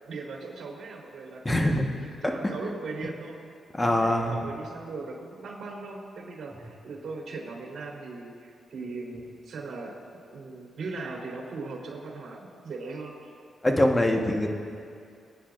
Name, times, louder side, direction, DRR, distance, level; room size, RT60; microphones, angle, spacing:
voice 1, 0.1-1.9 2.2-3.5 3.8-13.1, right 3 dB, 65° right, -1 dB, 3.8 m, -39 dB
voice 2, 1.4-1.8 2.2-2.3 3.7-4.4 13.6-14.5, left 1 dB, 15° left, 2 dB, 1.4 m, -23 dB
27.5 x 9.7 x 2.6 m, 2.3 s
cardioid pair, 80°, 0 cm